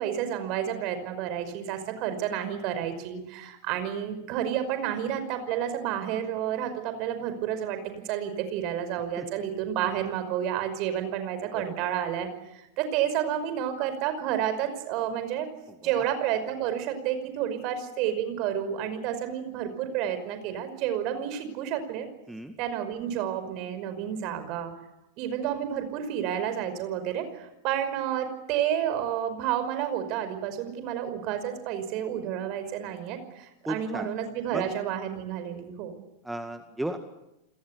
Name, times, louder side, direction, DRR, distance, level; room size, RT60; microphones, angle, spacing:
voice 1, 0.0-7.8 8.1-15.5 15.8-22.1 22.6-24.7 25.2-35.9, right 10 dB, 40° right, 9 dB, 5.3 m, -30 dB
voice 2, 11.5-11.9 15.9-16.0 22.3-22.5 33.7-34.1 34.5-34.6 36.2-37.0, right 1 dB, 5° right, 7 dB, 1.9 m, -34 dB
30.0 x 21.5 x 8.3 m, 0.90 s
figure-of-eight pair, 90°, 0 cm